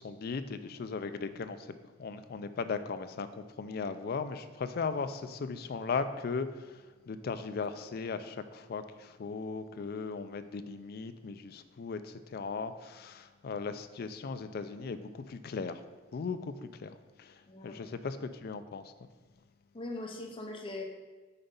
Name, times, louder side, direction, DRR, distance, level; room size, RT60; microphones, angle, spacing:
voice 1, 0.0-1.7 2.0-6.7 7.1-15.8 16.1-16.5 16.8-17.3 17.6-18.8, left 5 dB, 55° left, 10 dB, 0.4 m, -37 dB
voice 2, 17.5-17.8 19.7-20.8, left 2 dB, 30° left, 2 dB, 0.8 m, -40 dB
5.7 x 4.0 x 5.2 m, 1.3 s
head